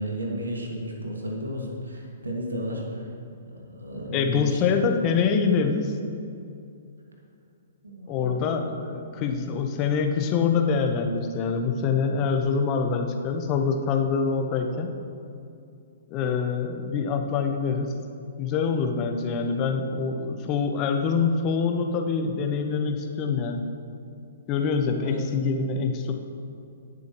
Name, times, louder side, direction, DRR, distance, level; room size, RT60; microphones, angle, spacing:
voice 1, 0.0-3.1 3.5-4.9 7.8-8.5 24.9-25.4, equal, 80° right, -1 dB, 2.2 m, -33 dB
voice 2, 4.1-5.9 8.1-14.9 16.1-17.9 18.4-23.7 24.5-26.1, left 5 dB, 30° left, 4 dB, 1.1 m, -25 dB
19.5 x 6.8 x 3.1 m, 2.5 s
figure-of-eight pair, 120°, 0 cm